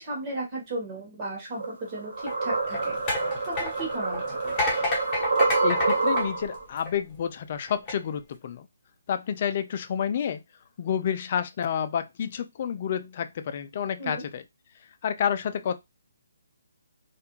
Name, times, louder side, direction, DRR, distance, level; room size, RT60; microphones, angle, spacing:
voice 1, 0.0-4.4 14.0-14.2, right 2 dB, 30° right, 1.2 m, -35 dB
sound 1, 1.6-6.6, right 3 dB, 80° right, 0.8 m, -27 dB
sound 2, 2.2-7.1 7.7-7.9, left 2 dB, 25° left, 1.0 m, -31 dB
voice 2, 5.6-8.7 9.1-10.4 10.8-14.4 15.0-15.8, left 8 dB, 45° left, 0.3 m, -29 dB
2.4 x 2.1 x 3.0 m
hypercardioid pair, 150°, 0 cm